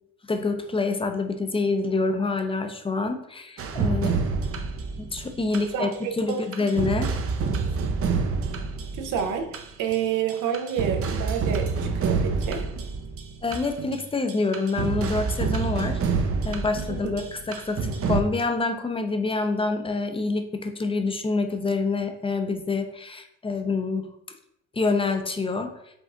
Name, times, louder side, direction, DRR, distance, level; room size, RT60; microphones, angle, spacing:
voice 1, 0.3-4.2 5.0-5.9 6.2-7.1 13.4-24.1 24.7-25.7, left 3 dB, 20° left, 6 dB, 0.5 m, -27 dB
sound 1, 3.6-6.0 6.3-10.0 10.3-18.2, right 4 dB, 50° right, 0.6 m, -28 dB
voice 2, 5.7-6.4 8.9-12.6 16.9-17.2, right 8 dB, 90° right, 4 dB, 0.8 m, -29 dB
5.1 x 2.5 x 3.7 m, 0.75 s
cardioid pair, 90°, 30 cm